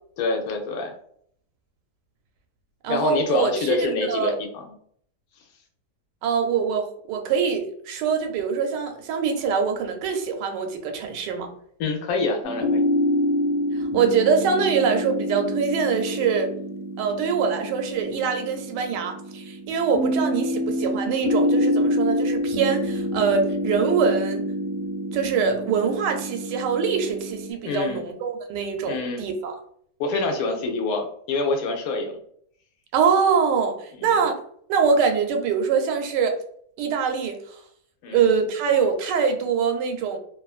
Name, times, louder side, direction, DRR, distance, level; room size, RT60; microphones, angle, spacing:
voice 1, 0.2-0.9 2.9-4.7 11.8-12.9 27.6-28.0 28.8-29.2 30.0-32.2 34.0-34.1 38.0-38.3, left 3 dB, 65° left, 3 dB, 1.0 m, -26 dB
voice 2, 2.8-4.4 6.2-11.5 13.7-16.5 17.0-24.4 25.1-29.5 32.9-34.4 34.7-36.4 36.8-37.6 38.1-40.2, right 6 dB, 90° right, 4 dB, 1.2 m, -24 dB
sound 1, 12.4-27.5, left 1 dB, 15° right, 0.7 m, -27 dB
2.7 x 2.5 x 2.3 m, 0.64 s
omnidirectional pair, 1.8 m